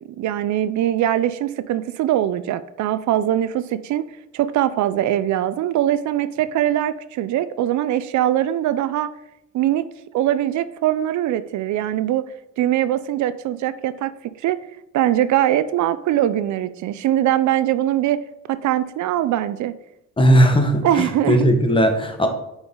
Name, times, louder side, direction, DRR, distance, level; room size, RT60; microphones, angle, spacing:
voice 1, 0.2-4.0 4.3-9.1 9.5-9.9 10.1-14.1 14.4-14.6 14.9-18.2 18.5-19.7 20.8-21.5, right 12 dB, 70° right, 14 dB, 0.4 m, -21 dB
voice 2, 20.2-22.3, equal, 15° left, 5 dB, 1.2 m, -17 dB
8.0 x 4.7 x 3.7 m, 0.85 s
cardioid pair, 90°, 30 cm